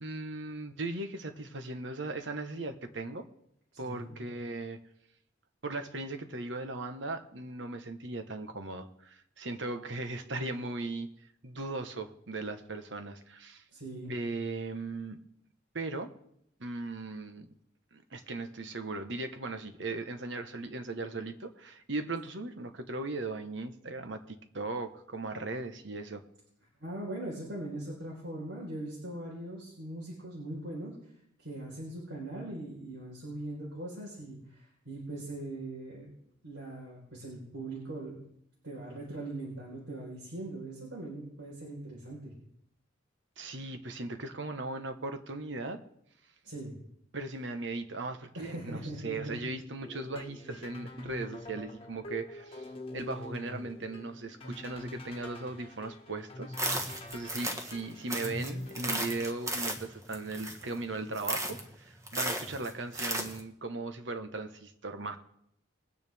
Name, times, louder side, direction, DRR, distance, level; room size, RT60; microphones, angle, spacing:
voice 1, 0.0-3.3 3.8-4.8 5.6-11.1 11.4-13.6 14.1-15.2 15.7-16.1 16.6-17.5 17.9-26.2 43.4-45.8 47.1-65.2, right 2 dB, 65° right, 7 dB, 1.2 m, -38 dB
voice 2, 3.7-4.2 13.7-14.1 26.8-30.9 31.4-36.1 36.4-38.2 38.6-42.3 46.4-46.7 48.3-49.4, right 1 dB, 85° right, -4 dB, 4.3 m, -41 dB
sound 1, 49.8-59.2, left 1 dB, 30° left, 1.3 m, -44 dB
sound 2, 56.5-57.8 58.1-60.8 61.1-61.6 62.1-63.4, right 1 dB, 15° right, 1.4 m, -35 dB
21.5 x 9.7 x 3.5 m, 0.71 s
head